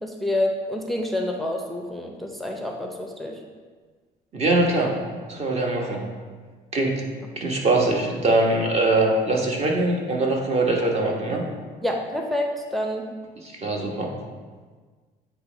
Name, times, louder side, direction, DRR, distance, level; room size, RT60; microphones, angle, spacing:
voice 1, 0.0-3.4 11.8-13.1, left 1 dB, ahead, 1 dB, 0.6 m, -28 dB
voice 2, 4.3-4.9 5.3-6.0 6.7-7.0 7.4-11.4 13.4-14.1, right 2 dB, 40° right, 0 dB, 1.3 m, -22 dB
8.0 x 3.1 x 5.0 m, 1.5 s
cardioid pair, 110°, 17 cm